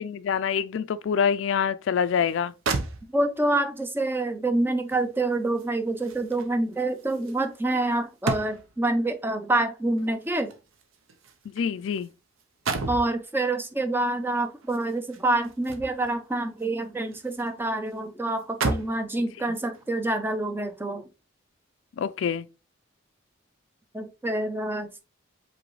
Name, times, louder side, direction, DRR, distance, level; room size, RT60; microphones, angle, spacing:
voice 1, 0.0-2.5 11.5-12.1 22.0-22.5, left 7 dB, 70° left, 0.3 m, -26 dB
sound 1, 2.3-2.4 2.7-3.5 4.9-8.9 10.0-12.1 12.4-13.1 14.6-16.2 16.6-17.5 17.9-18.0 18.4-19.1 19.7-19.9, right 3 dB, 90° right, 0.7 m, -34 dB
voice 2, 3.1-10.5 12.9-21.0 23.9-25.0, right 2 dB, 10° right, 0.4 m, -27 dB
5.1 x 3.1 x 3.1 m
head